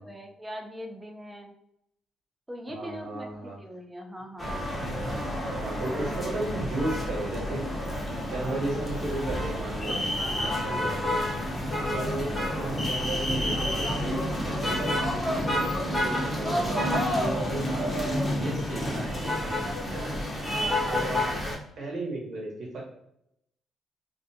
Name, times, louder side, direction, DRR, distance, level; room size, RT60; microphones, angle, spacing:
voice 1, 0.0-1.6 2.5-4.6 10.2-10.6 11.7-12.0 16.2-16.5 17.3-17.6 20.6-21.4, equal, 15° right, 2 dB, 0.4 m, -41 dB
voice 2, 2.7-3.6 5.5-7.8 8.2-10.0 10.3-11.1 11.9-15.7 16.0-16.7 17.1-20.2 20.9-21.3 21.8-22.8, right 2 dB, 60° right, -2 dB, 1.0 m, -35 dB
sound 1, 4.4-21.6, left 1 dB, 25° left, 0.8 m, -29 dB
2.4 x 2.2 x 2.7 m, 0.77 s
cardioid pair, 90°, 0 cm